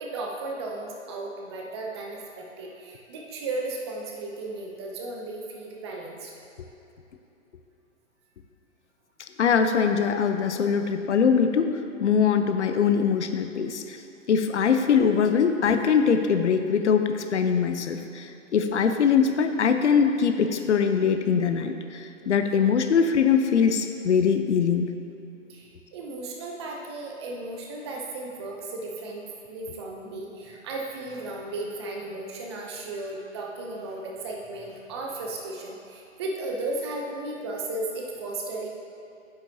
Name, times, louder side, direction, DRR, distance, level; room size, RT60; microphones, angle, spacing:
voice 1, 0.0-6.3 25.5-38.7, right 2 dB, 20° right, -1 dB, 0.6 m, -35 dB
voice 2, 9.4-14.0 14.3-24.9, left 6 dB, 60° left, 7 dB, 0.7 m, -22 dB
8.9 x 8.9 x 2.7 m, 2.9 s
figure-of-eight pair, 135°, 39 cm